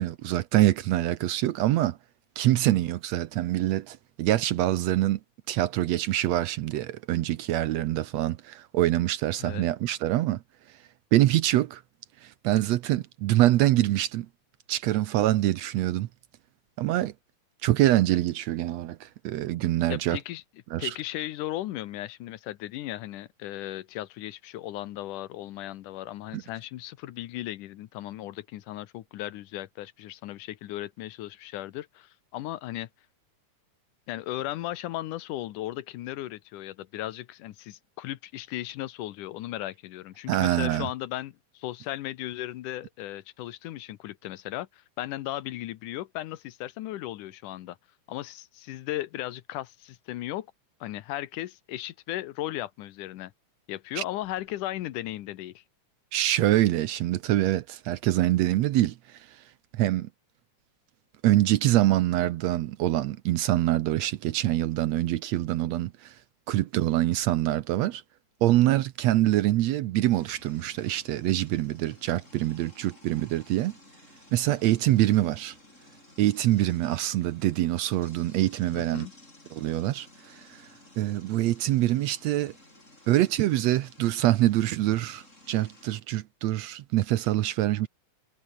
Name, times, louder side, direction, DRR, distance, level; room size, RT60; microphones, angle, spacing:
voice 1, 0.0-2.0 2.4-5.2 5.5-10.4 11.1-11.8 12.2-14.3 14.7-16.1 16.8-17.1 17.6-20.2 20.7-21.0 26.3-26.4 40.3-40.9 54.0-54.1 56.1-59.4 59.7-60.1 61.2-66.2 66.5-68.0 68.4-73.7 74.3-75.6 76.2-79.1 79.5-80.6 81.0-82.5 83.1-87.9, right 15 dB, 70° right, 1.7 m, -25 dB
voice 2, 19.9-20.4 20.8-32.9 34.1-47.8 48.1-50.5 50.8-53.3 53.7-55.6 78.7-79.1, left 14 dB, 85° left, 2.5 m, -36 dB
sound 1, 70.1-86.0, left 1 dB, 20° left, 7.8 m, -55 dB
omnidirectional pair, 3.6 m